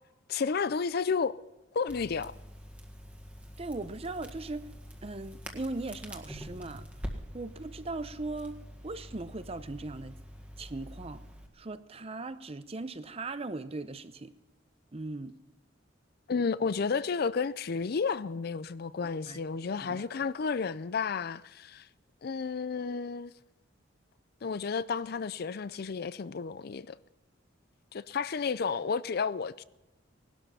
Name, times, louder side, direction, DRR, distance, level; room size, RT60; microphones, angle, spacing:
voice 1, 0.3-1.4 1.7-2.3 16.3-21.8 22.2-23.3 24.4-27.0 27.9-29.6, left 5 dB, 55° left, 0.4 m, -32 dB
Crackle, 1.9-11.5, equal, 5° right, 1.7 m, -45 dB
voice 2, 3.6-4.7 5.0-6.8 7.3-8.6 8.8-10.2 10.6-11.2 11.6-14.3 14.9-15.4 19.3-19.4 19.8-20.1, right 2 dB, 30° right, 0.7 m, -38 dB
19.0 x 12.0 x 5.6 m
head